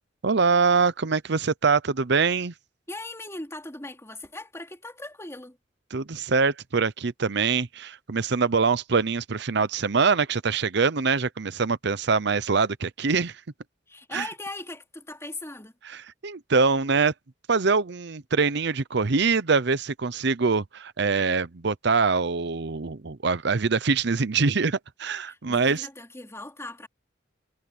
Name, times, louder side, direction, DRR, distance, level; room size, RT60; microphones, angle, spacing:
voice 1, 0.2-2.5 5.9-13.4 14.1-14.3 15.8-17.1 17.5-25.9, right 4 dB, 65° right, 0.8 m, -24 dB
voice 2, 2.9-5.6 13.9-15.7 25.2-26.9, left 2 dB, 15° left, 3.3 m, -39 dB
head